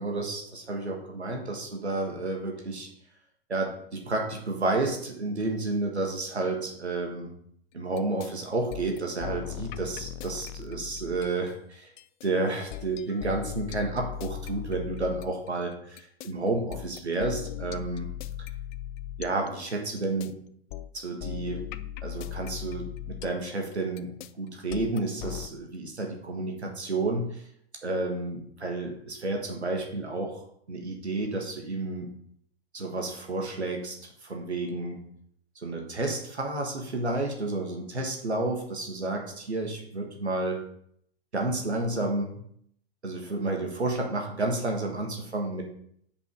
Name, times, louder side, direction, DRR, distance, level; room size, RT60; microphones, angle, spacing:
voice 1, 0.0-2.9 3.5-7.3 7.7-11.9 12.2-18.1 19.2-20.3 20.9-21.6 22.0-27.4 27.8-30.4 30.7-32.1 32.7-34.0 34.2-35.0 35.6-40.6 41.3-42.4 43.0-45.6, right 2 dB, 90° right, 1 dB, 1.7 m, -31 dB
sound 1, 8.0-8.3 8.7-11.5 12.0-15.5 16.0-20.3 20.7-25.5, left 12 dB, 45° left, 0.5 m, -38 dB
5.5 x 5.3 x 5.2 m, 0.67 s
figure-of-eight pair, 105°, 32 cm